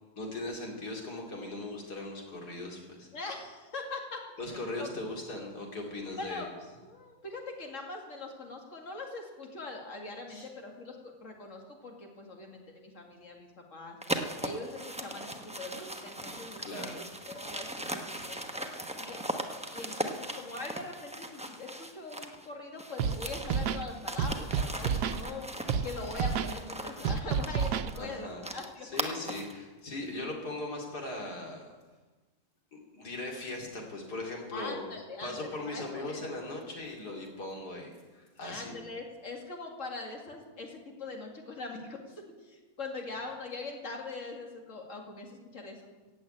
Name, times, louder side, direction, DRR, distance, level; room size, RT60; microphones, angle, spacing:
voice 1, 0.2-3.1 4.4-6.4 10.3-10.5 16.6-17.0 27.9-28.5 28.8-31.7 32.7-34.9 35.2-38.7, left 2 dB, 80° left, 0 dB, 3.4 m, -39 dB
voice 2, 3.1-4.9 6.2-6.5 6.8-19.2 19.7-25.5 25.8-28.9 34.5-36.2 38.4-45.8, left 3 dB, 50° left, 1 dB, 2.5 m, -42 dB
sound 1, 14.0-22.5 22.8-29.6, right 1 dB, 5° right, 0.7 m, -39 dB
Scratching (performance technique), 23.0-23.2 23.4-23.8 24.2-25.2 25.7-25.8 26.1-26.5 27.0-27.9, right 7 dB, 90° right, 1.3 m, -29 dB
16.0 x 8.0 x 8.8 m, 1.3 s
omnidirectional pair, 1.7 m